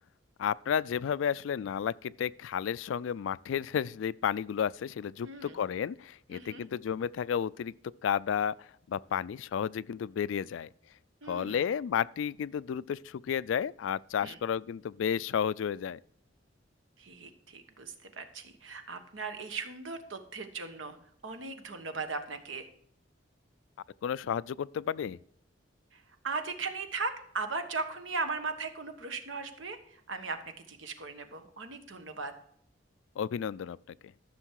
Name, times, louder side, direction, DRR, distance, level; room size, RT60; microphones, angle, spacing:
voice 1, 0.4-7.7 8.0-10.7 11.3-16.0 24.0-25.2 33.2-34.0, left 8 dB, 80° left, 0.3 m, -32 dB
voice 2, 5.2-5.6 6.3-6.6 11.2-11.7 14.2-14.4 17.0-21.0 21.2-22.7 25.9-30.4 30.7-32.3, right 4 dB, 85° right, 1.3 m, -38 dB
13.5 x 6.4 x 4.6 m
head